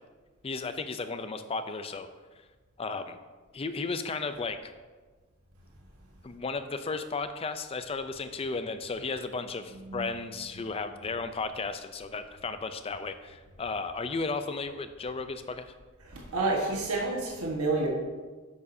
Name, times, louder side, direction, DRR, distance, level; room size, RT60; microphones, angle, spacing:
voice 1, 0.4-2.1 2.8-3.2 3.5-4.7 6.2-15.7, left 4 dB, 25° left, 10 dB, 0.4 m, -34 dB
voice 2, 16.1-17.9, right 2 dB, 85° right, -2 dB, 1.4 m, -29 dB
9.8 x 7.3 x 2.7 m, 1.4 s
head